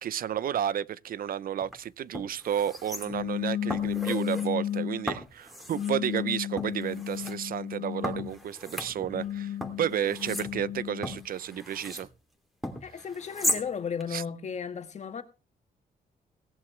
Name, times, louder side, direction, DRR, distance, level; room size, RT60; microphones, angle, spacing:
voice 1, 0.0-12.1 14.1-14.2, right 10 dB, 65° right, 0.7 m, -32 dB
sound 1, 1.6-1.7 2.1-3.4 3.7-4.5 5.1-6.0 6.6-7.3 8.0-9.3 9.6-12.1 12.6-13.7 14.0-14.1, left 1 dB, ahead, 2.8 m, -36 dB
sound 2, 3.0-5.1 5.7-8.4 9.0-11.3, left 10 dB, 65° left, 0.8 m, -33 dB
voice 2, 12.8-15.2, left 6 dB, 45° left, 2.0 m, -35 dB
17.5 x 11.0 x 3.3 m
wide cardioid pair, 140°, 16 cm